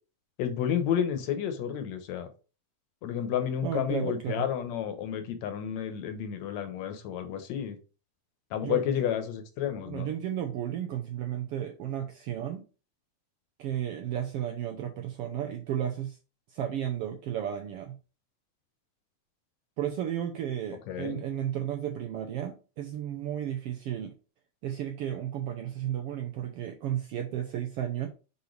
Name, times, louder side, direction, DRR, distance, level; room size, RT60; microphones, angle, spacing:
voice 1, 0.4-2.3 3.0-7.8 8.5-10.1 20.9-21.2, left 9 dB, 70° left, 8 dB, 2.1 m, -31 dB
voice 2, 3.6-4.4 8.6-8.8 9.8-12.6 13.6-16.2 16.5-18.0 19.8-24.1 24.6-28.1, right 10 dB, 75° right, 4 dB, 1.4 m, -33 dB
6.4 x 5.4 x 3.2 m, 0.34 s
omnidirectional pair, 3.4 m